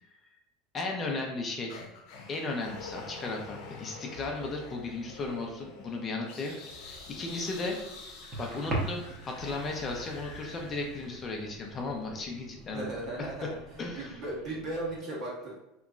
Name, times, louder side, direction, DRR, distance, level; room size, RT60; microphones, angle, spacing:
voice 1, 0.7-1.8 2.3-7.8 8.0-12.9 13.2-13.3 13.8-14.2, left 3 dB, 30° left, 1 dB, 0.6 m, -35 dB
sound 1, 1.7-11.9, left 3 dB, 70° left, 0.8 m, -47 dB
sound 2, 6.8-15.0, right 2 dB, 30° right, 1.0 m, -42 dB
voice 2, 12.7-15.6, right 2 dB, 50° right, -5 dB, 1.4 m, -37 dB
3.3 x 3.0 x 2.5 m, 0.92 s
supercardioid pair, 125°, 0 cm